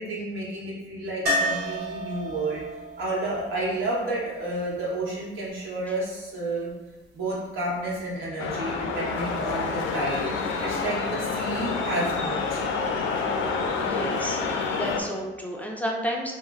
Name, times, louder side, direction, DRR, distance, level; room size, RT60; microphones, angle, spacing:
voice 1, 0.0-2.6 3.0-6.7 7.1-10.2 10.6-12.7, right 2 dB, 80° right, -5 dB, 1.1 m, -30 dB
sound 1, 1.3-5.1 7.8-7.9 8.1-8.2, equal, 55° right, 1.0 m, -31 dB
sound 2, 8.4-15.0, left 4 dB, 85° left, 0.4 m, -28 dB
voice 2, 13.8-16.3, equal, 10° left, -1 dB, 0.4 m, -31 dB
3.0 x 2.6 x 2.4 m, 1.1 s
cardioid pair, 90°, 20 cm